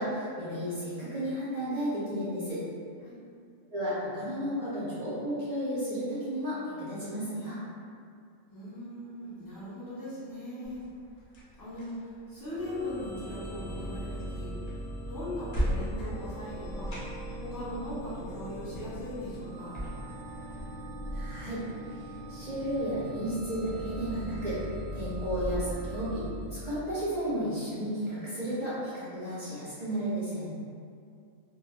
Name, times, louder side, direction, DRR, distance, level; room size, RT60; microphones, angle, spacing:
voice 1, 0.0-2.6 3.7-7.6 21.1-21.6 22.3-24.6 24.9-26.2 26.5-30.5, equal, 60° right, -10 dB, 0.4 m, -33 dB
voice 2, 8.5-10.8 11.6-14.5 15.1-16.9 17.4-19.8, left 1 dB, 20° left, -12 dB, 0.8 m, -39 dB
sound 1, 10.6-20.6, equal, 55° left, 0.4 m, -39 dB
sound 2, 12.5-27.3, right 1 dB, 20° right, 0.7 m, -40 dB
2.1 x 2.1 x 3.1 m, 2.3 s
omnidirectional pair, 1.3 m